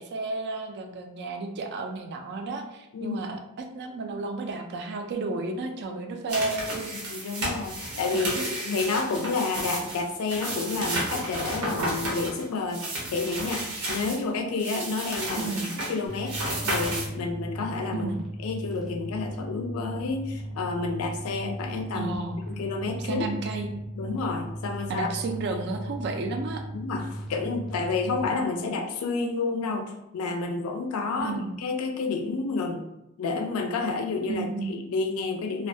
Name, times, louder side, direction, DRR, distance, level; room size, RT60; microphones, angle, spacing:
voice 1, 0.0-7.4 8.1-8.5 15.3-15.8 17.9-18.2 21.9-22.4 23.0-23.7 24.9-26.6 31.2-31.6 34.3-34.8, right 3 dB, 50° right, 5 dB, 0.3 m, -32 dB
sound 1, 6.3-14.2 14.6-17.1, right 1 dB, 80° right, 0.7 m, -32 dB
voice 2, 6.9-15.5 15.9-18.1 18.4-22.1 22.5-23.3 23.9-25.1 26.7-32.8 33.2-35.7, left 3 dB, 70° left, 4 dB, 0.4 m, -30 dB
sound 2, 16.1-28.2, equal, ahead, 0.6 m, -37 dB
2.3 x 2.1 x 2.6 m, 0.87 s
head